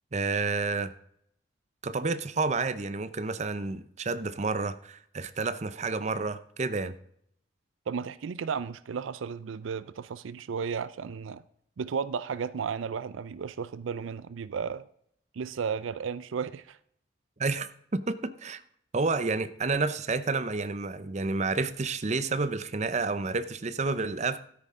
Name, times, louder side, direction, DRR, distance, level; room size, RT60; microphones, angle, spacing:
voice 1, 0.1-0.9 1.8-6.9 17.4-18.6 18.9-24.4, right 3 dB, 35° right, 0.6 m, -30 dB
voice 2, 7.9-11.4 11.8-14.9 15.3-16.8, right 6 dB, 85° right, 0.4 m, -34 dB
13.0 x 9.6 x 3.7 m
head